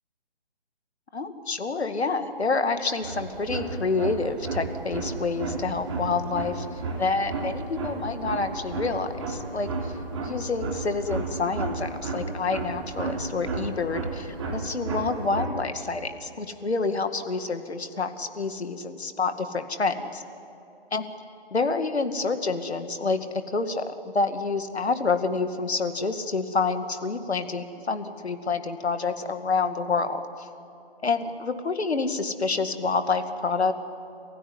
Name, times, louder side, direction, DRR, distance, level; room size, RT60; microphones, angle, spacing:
voice 1, 1.1-9.9 10.2-20.2 20.9-21.1 21.5-23.9 24.1-30.5 31.0-33.7, left 4 dB, 80° left, 8 dB, 2.3 m, -28 dB
sound 1, 2.9-15.5, right 3 dB, 30° right, 3.6 m, -33 dB
29.5 x 16.0 x 9.7 m, 2.9 s
hypercardioid pair, 165°, 32 cm